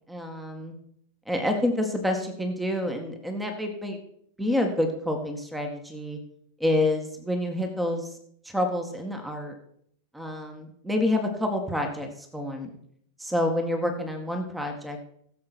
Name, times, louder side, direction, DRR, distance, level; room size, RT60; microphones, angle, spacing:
voice 1, 0.1-0.7 1.3-4.0 4.4-6.2 6.6-8.1 8.5-9.5 10.1-12.7 13.2-15.1, left 1 dB, 5° right, 4 dB, 2.0 m, -28 dB
17.0 x 7.8 x 4.5 m, 0.67 s
figure-of-eight pair, 90°, 0 cm